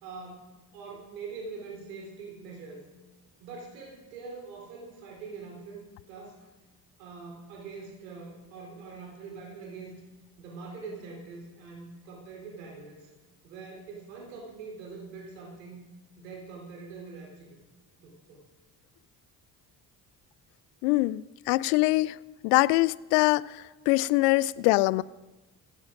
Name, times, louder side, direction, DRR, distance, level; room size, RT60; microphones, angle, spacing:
voice 1, 0.0-2.8 3.4-6.4 7.0-9.9 10.4-13.1 13.4-15.8 16.2-17.5 18.0-18.4, right 4 dB, 85° right, 4.0 m, -43 dB
voice 2, 20.8-22.2 22.4-25.0, left 20 dB, 75° left, 0.5 m, -24 dB
23.5 x 16.0 x 2.6 m
hypercardioid pair, 50°, 48 cm